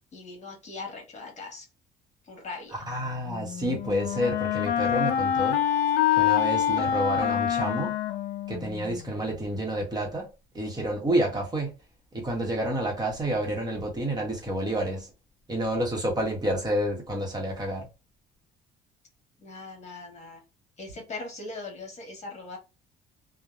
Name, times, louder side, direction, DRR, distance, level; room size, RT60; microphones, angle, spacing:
voice 1, 0.1-1.7 2.3-2.8 19.4-20.4 20.8-22.6, left 3 dB, 40° left, 1.3 m, -40 dB
voice 2, 2.7-5.8 6.1-8.0 8.5-10.3 10.5-11.7 12.1-15.1 15.5-17.9, right 1 dB, 25° right, 1.1 m, -29 dB
Wind instrument woodwind instrument, 3.3-9.1, left 10 dB, 80° left, 0.5 m, -26 dB
2.7 x 2.2 x 2.4 m
cardioid pair, 110°, 17 cm